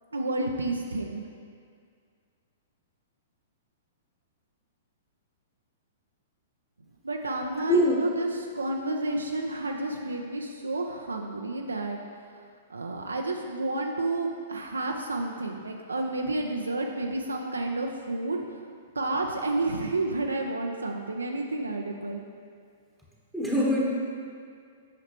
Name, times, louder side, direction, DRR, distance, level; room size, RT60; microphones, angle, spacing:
voice 1, 0.1-1.2 7.0-12.0 12.7-18.6 19.0-22.2, right 2 dB, 85° right, 2 dB, 0.4 m, -30 dB
voice 2, 23.3-23.8, equal, 5° left, -5 dB, 1.1 m, -23 dB
8.3 x 5.7 x 3.0 m, 2.2 s
figure-of-eight pair, 110°, 0 cm